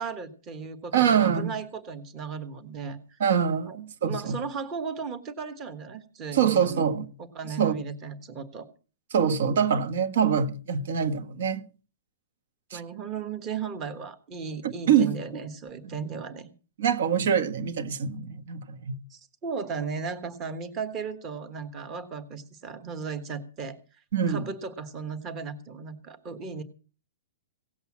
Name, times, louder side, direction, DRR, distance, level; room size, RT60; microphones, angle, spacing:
voice 1, 0.0-3.2 3.7-3.8 4.1-6.9 7.2-8.7 12.7-16.5 19.1-23.8 24.3-26.6, right 5 dB, 20° right, 1.4 m, -36 dB
voice 2, 0.9-1.5 3.2-4.4 6.3-7.1 7.6-7.8 9.1-11.7 12.7-12.8 14.6-15.2 15.8-15.9 16.8-19.0 24.1-24.4, right 7 dB, 55° right, 1.5 m, -24 dB
17.0 x 8.0 x 7.4 m
hypercardioid pair, 175°, 0 cm